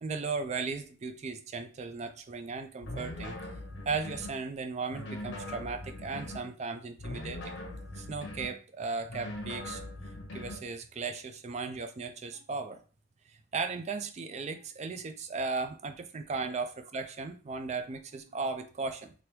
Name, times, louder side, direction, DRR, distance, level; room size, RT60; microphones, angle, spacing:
voice 1, 0.0-3.4 3.9-7.6 8.0-9.8 10.3-12.8 13.3-19.1, right 4 dB, 40° right, 8 dB, 0.4 m, -36 dB
sound 1, 2.8-4.4 4.9-6.5 7.0-8.6 9.1-10.7, left 1 dB, 90° left, 0.7 m, -41 dB
3.2 x 2.6 x 3.0 m, 0.37 s
head